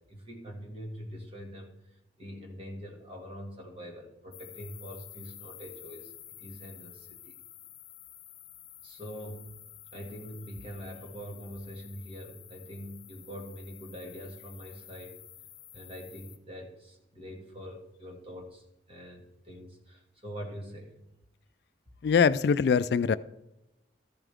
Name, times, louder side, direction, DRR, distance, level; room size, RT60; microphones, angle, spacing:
voice 1, 0.0-7.4 8.8-9.6 9.9-15.2 15.7-21.0, equal, 30° right, 2.0 m, -44 dB
sound 1, 4.3-16.4, left 12 dB, 35° left, 0.6 m, -50 dB
voice 2, 22.0-23.2, left 6 dB, 60° left, 0.3 m, -23 dB
13.5 x 7.3 x 3.5 m
head